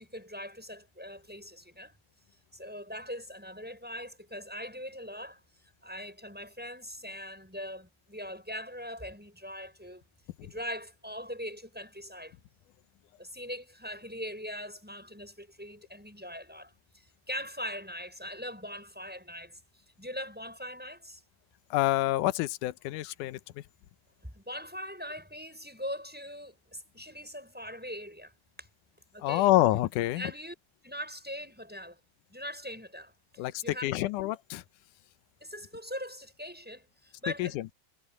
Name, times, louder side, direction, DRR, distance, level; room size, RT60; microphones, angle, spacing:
voice 1, 0.0-1.9 2.5-5.4 5.8-10.0 10.4-12.4 13.2-19.6 20.0-21.2 24.2-28.3 28.6-28.7 29.1-29.5 30.2-30.5 30.8-32.0 32.3-34.1 35.4-37.6, equal, 5° right, 6.8 m, -41 dB
voice 2, 21.7-23.4 29.2-30.2 33.4-34.6 37.4-37.7, left 15 dB, 80° left, 2.3 m, -27 dB
omnidirectional pair, 3.6 m